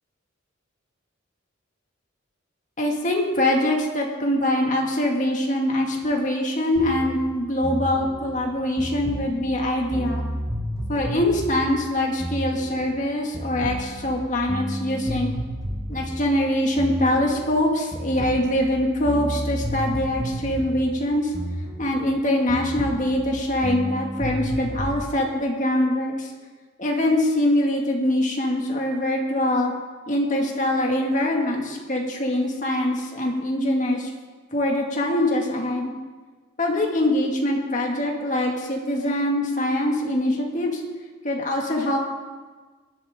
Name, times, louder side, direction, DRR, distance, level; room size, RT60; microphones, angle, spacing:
voice 1, 2.8-10.3 10.9-15.3 15.9-21.3 21.8-26.3 26.8-29.7 30.1-34.1 34.5-35.9 36.6-40.8 41.2-42.0, left 1 dB, 35° left, 0 dB, 2.2 m, -23 dB
sound 1, 6.8-13.1 13.3-17.6 17.9-22.2 22.5-25.0, equal, 15° right, 1.3 m, -32 dB
19.0 x 12.0 x 3.8 m, 1.4 s
head